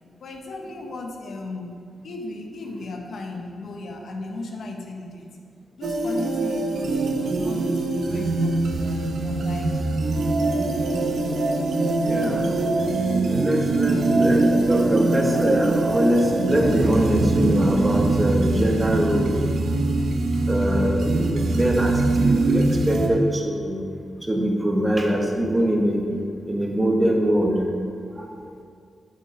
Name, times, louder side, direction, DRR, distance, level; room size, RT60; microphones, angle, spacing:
voice 1, 0.2-1.8 2.0-5.3 5.8-9.8, left 2 dB, 70° left, 2 dB, 1.1 m, -36 dB
sound 1, 5.8-23.1, right 2 dB, 80° right, 0.8 m, -23 dB
voice 2, 12.0-12.5 13.1-19.4 20.5-23.9 24.2-26.0 26.5-27.7 28.1-28.5, equal, 20° right, 0 dB, 1.3 m, -23 dB
9.1 x 8.3 x 3.3 m, 2.3 s
cardioid pair, 100°, 0 cm